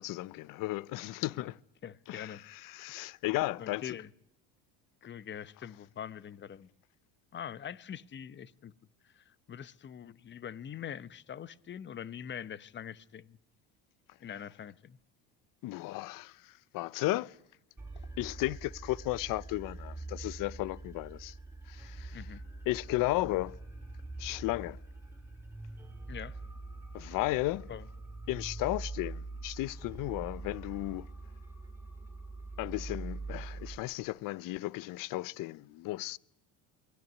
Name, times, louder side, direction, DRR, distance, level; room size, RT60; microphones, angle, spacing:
voice 1, 0.0-1.6 2.1-4.0 15.6-17.4 18.2-21.4 21.7-22.3 22.7-23.6 24.2-24.8 26.9-27.7 28.3-31.1 32.6-36.2, left 18 dB, 60° left, 0.8 m, -34 dB
voice 2, 1.8-2.4 3.6-4.1 5.0-6.7 7.3-8.7 9.0-13.4 14.2-15.0 22.1-22.4 26.1-26.4 27.7-27.8, left 9 dB, 30° left, 1.0 m, -43 dB
sound 1, 17.8-33.8, right 3 dB, 5° right, 6.5 m, -44 dB
23.5 x 17.0 x 9.4 m
supercardioid pair, 115°, 37 cm